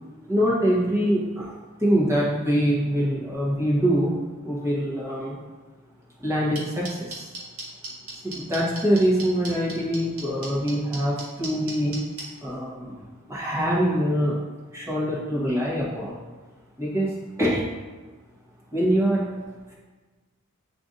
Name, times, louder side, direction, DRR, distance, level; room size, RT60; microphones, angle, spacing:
voice 1, 0.3-1.5 1.8-4.1 4.4-5.3 6.2-7.3 8.2-12.0 12.4-14.4 14.7-16.2 16.8-17.6 18.7-19.3, equal, 10° right, -6 dB, 1.1 m, -24 dB
sound 1, 6.5-12.2, right 2 dB, 70° right, 1.3 m, -35 dB
7.6 x 2.6 x 2.6 m, 1.3 s
head